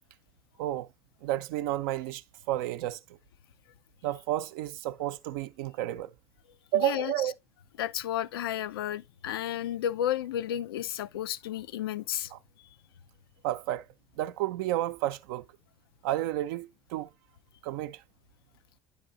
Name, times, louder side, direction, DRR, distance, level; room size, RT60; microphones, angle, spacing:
voice 1, 1.2-3.0 4.0-6.1 6.7-7.3 12.3-12.4 13.4-13.8 14.2-15.5 16.0-17.1 17.6-18.0, right 14 dB, 65° right, 0.6 m, -31 dB
voice 2, 6.8-7.1 7.8-12.3, left 11 dB, 75° left, 0.4 m, -32 dB
10.5 x 3.6 x 3.8 m
figure-of-eight pair, 60°, 13 cm